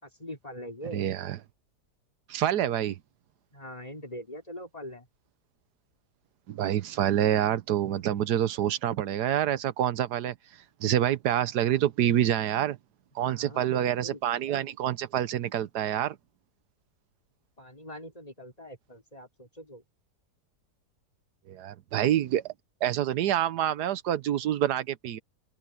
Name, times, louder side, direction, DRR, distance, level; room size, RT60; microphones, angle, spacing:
voice 1, 0.0-1.1 3.5-5.1 13.2-14.2 17.6-19.8, equal, 20° left, 3.4 m, -42 dB
voice 2, 0.9-1.4 2.3-3.0 6.5-10.3 10.8-12.8 13.1-16.2 21.5-22.5 22.8-25.2, right 11 dB, 75° right, 1.4 m, -27 dB
open air
omnidirectional pair, 1.8 m